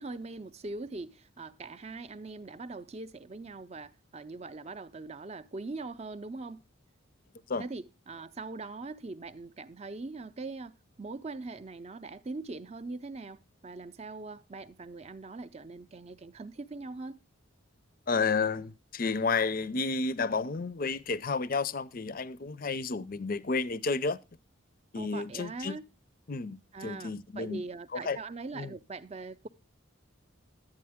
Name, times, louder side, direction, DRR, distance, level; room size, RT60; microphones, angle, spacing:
voice 1, 0.0-6.6 7.6-17.2 24.9-25.8 26.7-29.5, right 3 dB, 30° right, 0.5 m, -41 dB
voice 2, 18.1-24.2 24.9-25.8 26.3-27.6 27.9-28.2 28.6-28.8, left 4 dB, 40° left, 0.5 m, -31 dB
11.0 x 9.5 x 3.5 m
head